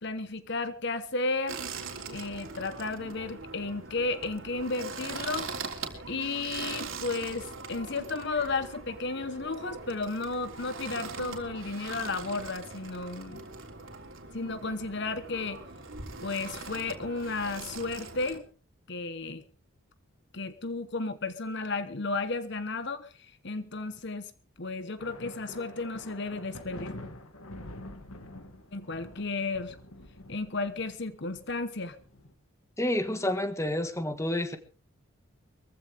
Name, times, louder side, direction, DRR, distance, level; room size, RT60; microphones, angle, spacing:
voice 1, 0.0-1.6 2.1-5.5 6.1-13.4 14.3-15.6 16.2-18.4 18.9-19.4 20.3-24.3 24.6-26.9 28.7-29.8 30.3-32.0, left 3 dB, 50° left, 11 dB, 1.1 m, -33 dB
sound 1, 1.5-18.4, right 4 dB, 65° right, 3.3 m, -41 dB
sound 2, 25.0-32.3, left 1 dB, 75° left, 2.4 m, -46 dB
voice 2, 32.8-34.6, left 1 dB, 15° left, 8 dB, 1.6 m, -29 dB
22.5 x 15.0 x 3.5 m, 0.37 s
head